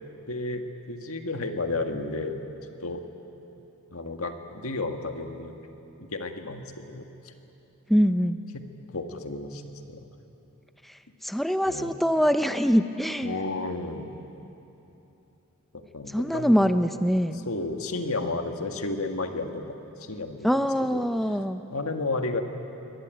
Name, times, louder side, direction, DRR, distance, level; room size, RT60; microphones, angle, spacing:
voice 1, 0.3-2.5 2.8-3.0 3.9-5.5 6.0-7.3 8.5-8.6 8.9-10.1 11.7-11.9 13.2-14.1 15.7-16.7 17.5-21.0 21.7-22.4, left 2 dB, 70° left, 5 dB, 1.8 m, -32 dB
voice 2, 7.9-8.4 11.2-13.3 16.1-17.4 20.4-21.6, equal, ahead, 9 dB, 0.5 m, -23 dB
24.0 x 18.5 x 9.2 m, 3.0 s
head